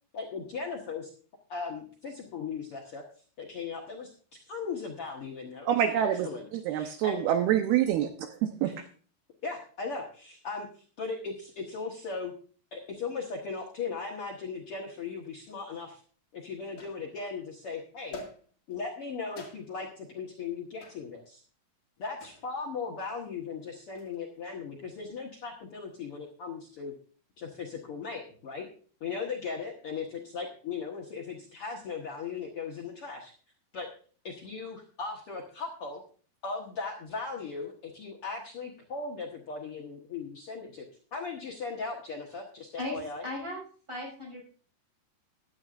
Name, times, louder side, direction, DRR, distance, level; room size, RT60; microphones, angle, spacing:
voice 1, 0.1-1.1 1.5-3.0 3.4-7.3 8.6-8.7 9.4-12.3 12.7-16.0 16.3-18.2 18.7-21.1 22.0-26.9 27.4-28.7 29.0-33.3 33.7-33.9 34.2-36.0 36.4-40.8 41.1-43.2, left 4 dB, 80° left, -1 dB, 1.2 m, -38 dB
voice 2, 5.7-8.3 8.6-8.8, right 10 dB, 75° right, 5 dB, 2.6 m, -26 dB
sound 1, 15.6-15.7 16.8-17.4 18.1-18.7 19.4-19.9 20.8-21.1 22.2-22.5 23.8-24.2, left 2 dB, 45° left, 2.9 m, -46 dB
voice 3, 42.8-43.6 43.9-44.4, left 2 dB, 10° right, -2 dB, 5.9 m, -36 dB
16.0 x 11.5 x 2.5 m, 0.42 s
omnidirectional pair, 4.9 m